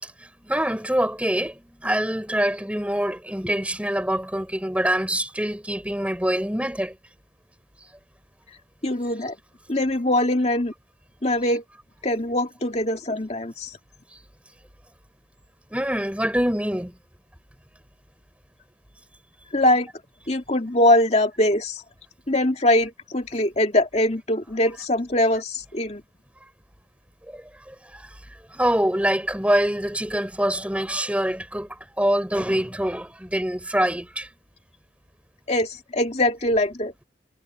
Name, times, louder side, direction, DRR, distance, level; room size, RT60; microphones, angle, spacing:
voice 1, 0.0-7.0 15.7-16.9 27.3-28.2 28.5-34.3, right 1 dB, 5° right, 5.2 m, -25 dB
voice 2, 8.8-9.4 9.7-10.7 11.2-11.6 12.0-13.8 19.5-19.9 20.3-21.8 22.3-26.0 35.5-36.9, left 1 dB, 35° left, 2.4 m, -22 dB
head